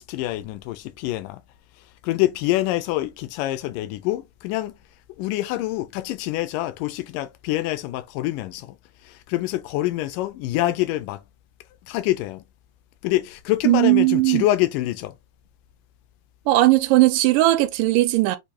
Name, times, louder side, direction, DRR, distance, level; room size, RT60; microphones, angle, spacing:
voice 1, 0.0-1.4 2.0-4.7 5.2-8.8 9.0-11.2 11.9-12.4 13.0-15.2, left 16 dB, 85° left, 2.2 m, -26 dB
voice 2, 13.7-14.4 16.5-18.4, right 18 dB, 90° right, 2.2 m, -18 dB
6.7 x 2.6 x 2.8 m
omnidirectional pair, 3.8 m